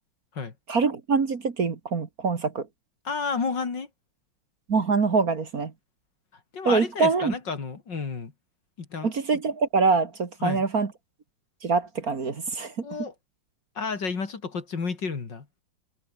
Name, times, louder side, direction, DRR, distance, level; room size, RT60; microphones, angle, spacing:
voice 1, 0.7-2.7 4.7-5.7 6.7-7.3 9.0-10.9 11.6-12.7, right 4 dB, 45° right, 2.2 m, -24 dB
voice 2, 3.0-3.9 6.5-8.3 8.8-9.1 10.4-10.6 12.8-13.1 13.7-15.5, left 5 dB, 55° left, 3.3 m, -31 dB
omnidirectional pair, 2.3 m